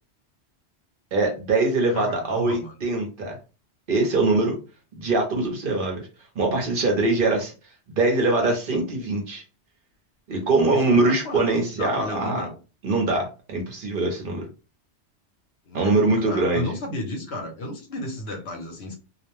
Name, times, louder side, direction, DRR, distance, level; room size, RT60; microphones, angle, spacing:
voice 1, 1.1-3.4 3.9-4.6 4.9-6.1 6.4-7.5 7.9-9.4 10.3-12.5 12.8-14.4 15.7-16.7, right 2 dB, 55° right, 2 dB, 0.8 m, -23 dB
voice 2, 1.9-2.7 10.7-11.4 11.7-12.5 15.6-18.9, left 1 dB, 65° left, 2 dB, 1.0 m, -33 dB
2.4 x 2.1 x 3.0 m, 0.32 s
omnidirectional pair, 1.2 m